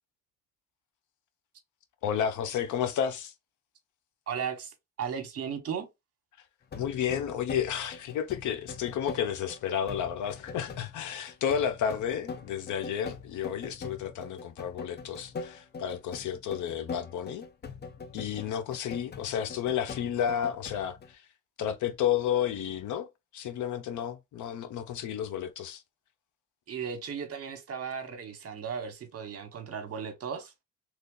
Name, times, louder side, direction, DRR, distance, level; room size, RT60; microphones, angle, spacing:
voice 1, 2.0-3.3 6.8-17.4 18.1-21.2 21.6-25.8, left 9 dB, 75° left, 0.7 m, -31 dB
voice 2, 4.3-5.8 26.7-30.5, right 7 dB, 50° right, 1.1 m, -36 dB
sound 1, 6.7-21.1, left 5 dB, 35° left, 0.5 m, -43 dB
3.2 x 2.3 x 3.8 m
cardioid pair, 90°, 30 cm